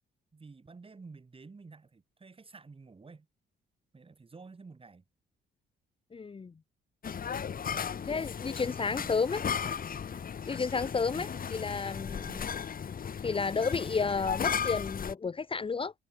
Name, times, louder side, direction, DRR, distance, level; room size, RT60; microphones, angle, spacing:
voice 1, 0.3-3.3 3.9-5.0 8.9-9.2 10.9-11.3 11.9-12.5, right 4 dB, 25° right, 4.5 m, -51 dB
voice 2, 6.1-6.5 8.0-9.4 10.5-12.4 13.2-15.9, left 5 dB, 25° left, 0.9 m, -32 dB
sound 1, 7.0-15.1, left 7 dB, 45° left, 2.0 m, -35 dB
cardioid pair, 90°, 20 cm